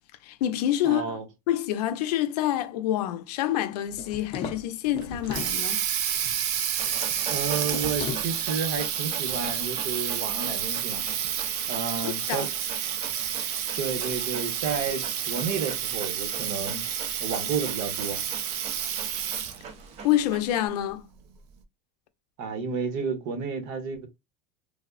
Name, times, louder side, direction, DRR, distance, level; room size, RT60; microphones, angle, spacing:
voice 1, 0.2-1.2 1.5-5.8 12.0-12.5 20.0-21.0, left 12 dB, 85° left, 0.5 m, -27 dB
voice 2, 0.8-1.2 7.3-11.0 11.7-12.5 13.8-16.9 17.2-18.2 22.4-24.1, right 5 dB, 55° right, 0.9 m, -31 dB
sound 1, 3.9-5.6 7.7-8.3, left 6 dB, 30° left, 0.4 m, -36 dB
Water tap faucet, 5.0-19.7, right 9 dB, 85° right, 0.6 m, -30 dB
Dog, 6.8-20.7, right 5 dB, 35° right, 0.5 m, -43 dB
3.3 x 2.0 x 2.3 m
supercardioid pair, 155°, 20 cm